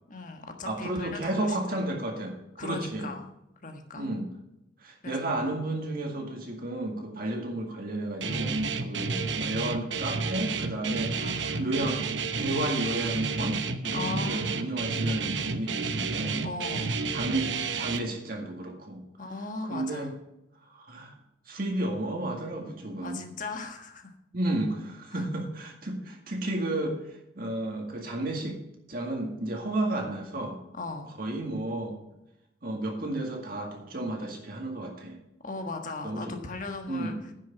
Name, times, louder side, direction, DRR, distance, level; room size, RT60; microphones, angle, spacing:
voice 1, 0.1-1.8 2.6-3.3 3.6-4.1 5.0-5.3 11.2-11.7 13.9-14.7 16.4-17.0 19.2-20.1 23.0-24.1 25.1-25.3 30.7-31.1 35.4-37.1, left 3 dB, 45° left, 5 dB, 1.4 m, -38 dB
voice 2, 0.7-3.1 3.9-4.3 4.8-11.1 11.6-12.1 12.3-16.5 17.1-19.0 19.6-20.1 20.7-21.1 21.5-23.3 24.3-28.6 28.9-30.6 31.2-32.0 32.6-35.2 36.0-36.3 36.9-37.2, right 1 dB, 50° right, 1 dB, 2.0 m, -32 dB
Guitar, 8.2-18.0, right 4 dB, 70° right, 0.8 m, -30 dB
10.0 x 6.4 x 7.0 m, 0.86 s
head